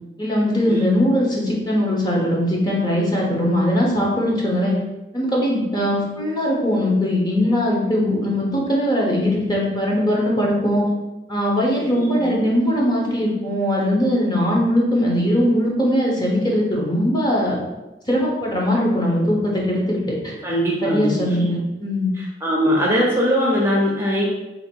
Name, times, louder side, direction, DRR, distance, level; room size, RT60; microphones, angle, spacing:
voice 1, 0.2-4.7 5.1-10.8 11.3-17.6 18.1-20.0 20.2-20.3 20.8-22.1, equal, 25° left, -3 dB, 0.9 m, -20 dB
voice 2, 11.9-12.4 20.4-21.2 22.4-24.3, equal, 15° right, -4 dB, 0.6 m, -20 dB
3.0 x 2.8 x 4.5 m, 1.1 s
head